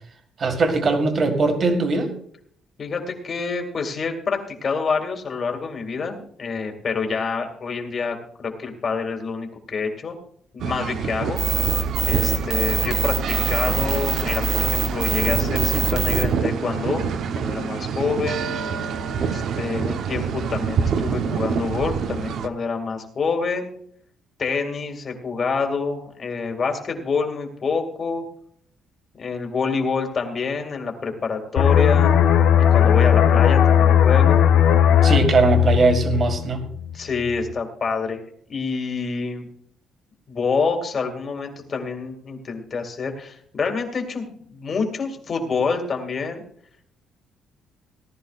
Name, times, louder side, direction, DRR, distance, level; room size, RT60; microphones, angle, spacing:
voice 1, 0.4-2.1 35.0-36.6, right 3 dB, 30° right, 5 dB, 1.8 m, -20 dB
voice 2, 2.8-10.2 10.5-11.4 12.0-18.4 19.2-23.7 24.4-28.2 29.2-32.2 32.7-34.5 36.9-38.2 38.5-39.5 40.3-46.4, left 4 dB, 30° left, 4 dB, 2.1 m, -27 dB
sound 1, 10.6-22.5, right 6 dB, 50° right, 0.8 m, -26 dB
sound 2, 11.4-16.2, right 3 dB, 70° right, 2.0 m, -23 dB
sound 3, 31.6-36.9 37.3-37.5, left 9 dB, 75° left, 1.4 m, -17 dB
18.5 x 12.5 x 2.4 m, 0.63 s
cardioid pair, 170°, 0 cm